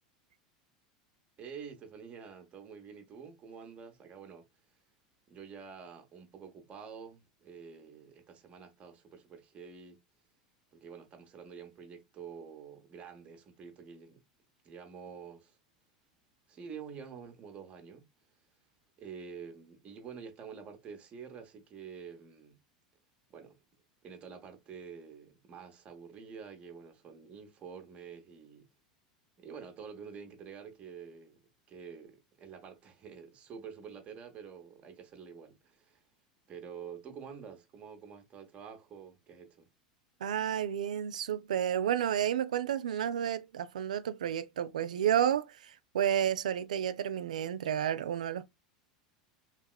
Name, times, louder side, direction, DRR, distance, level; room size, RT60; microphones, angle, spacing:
voice 1, 1.4-4.5 5.3-10.0 10.7-14.2 14.6-15.6 16.5-18.1 19.0-22.6 23.3-23.6 24.0-28.6 29.4-31.4 31.7-36.0 36.5-39.7, right 6 dB, 35° right, 0.8 m, -48 dB
voice 2, 40.2-48.5, right 9 dB, 80° right, 0.3 m, -31 dB
3.0 x 2.8 x 2.3 m
hypercardioid pair, 90°, 4 cm